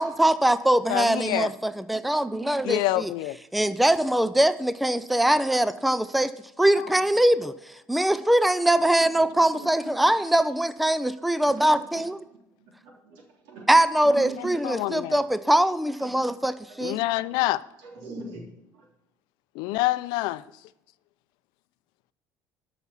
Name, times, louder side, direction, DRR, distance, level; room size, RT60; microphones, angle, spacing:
voice 1, 0.0-3.1 3.5-6.3 6.6-7.5 7.9-12.2 13.7-17.0, right 1 dB, ahead, 0.4 m, -22 dB
voice 2, 0.9-1.5 2.6-3.4 6.8-6.9 14.6-15.2 16.8-17.6 19.6-20.4, left 17 dB, 85° left, 0.5 m, -26 dB
voice 3, 9.3-10.0 11.4-13.7 14.0-14.5 14.9-15.0 16.0-16.1 16.7-16.8 17.8-18.9, right 3 dB, 90° right, 3.3 m, -43 dB
12.5 x 6.1 x 5.6 m
cardioid pair, 135°, 8 cm